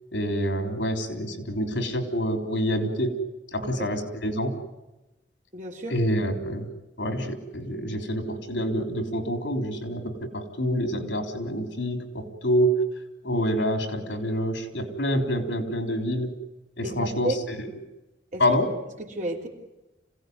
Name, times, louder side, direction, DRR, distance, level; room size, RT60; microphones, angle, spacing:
voice 1, 0.1-3.2 3.5-4.5 5.9-6.7 7.0-12.7 13.2-16.3 16.8-17.4 18.4-18.7, equal, 80° left, 6 dB, 3.5 m, -27 dB
voice 2, 5.5-6.0 16.8-17.4 18.3-18.4 19.0-19.5, right 1 dB, 45° right, 1 dB, 3.2 m, -32 dB
26.5 x 17.0 x 9.4 m, 1.0 s
head